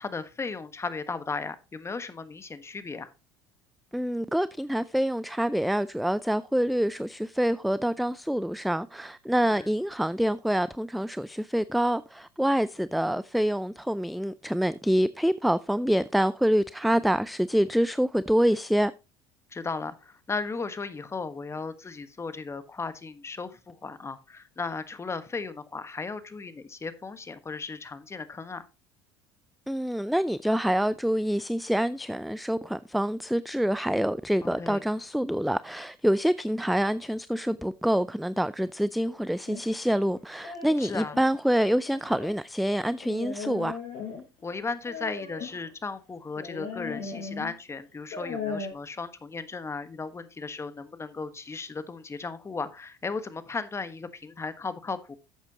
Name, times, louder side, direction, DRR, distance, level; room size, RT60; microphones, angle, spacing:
voice 1, 0.0-3.1 9.4-9.7 19.5-28.6 34.4-34.8 40.8-41.1 44.4-55.2, left 4 dB, 20° left, 1.4 m, -36 dB
voice 2, 3.9-18.9 29.7-43.8, equal, ahead, 0.4 m, -26 dB
sound 1, 39.5-41.2 41.9-42.4 43.0-44.4 44.9-45.7 46.4-47.5 48.0-48.7, left 5 dB, 60° left, 5.4 m, -37 dB
11.5 x 8.1 x 2.9 m
hypercardioid pair, 75°, 12 cm